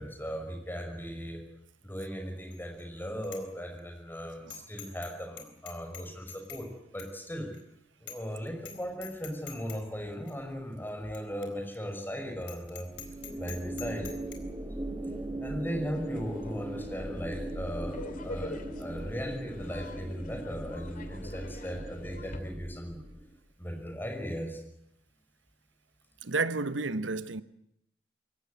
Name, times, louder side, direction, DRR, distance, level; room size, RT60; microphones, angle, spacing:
voice 1, 0.0-1.4 1.8-6.7 6.9-7.5 8.0-12.9 13.4-14.1 15.4-23.0 23.6-24.6, equal, 10° left, 5.8 m, -37 dB
Bicycle bell, 2.5-2.8 3.2-3.4 3.8-3.9 4.5-5.1 5.4-6.7 7.0-7.1 7.5-7.6 8.1-8.3 8.6-8.8 9.0-9.8 10.3-10.4 11.1-11.2 11.4-11.5 11.9-12.0 12.4-14.4, left 8 dB, 65° left, 4.1 m, -45 dB
sound 1, 12.9-23.4, right 1 dB, 15° right, 1.4 m, -39 dB
sound 2, 15.9-22.4, left 1 dB, 45° left, 2.3 m, -45 dB
voice 2, 26.2-27.4, right 3 dB, 85° right, 1.2 m, -31 dB
23.0 x 17.5 x 9.5 m
head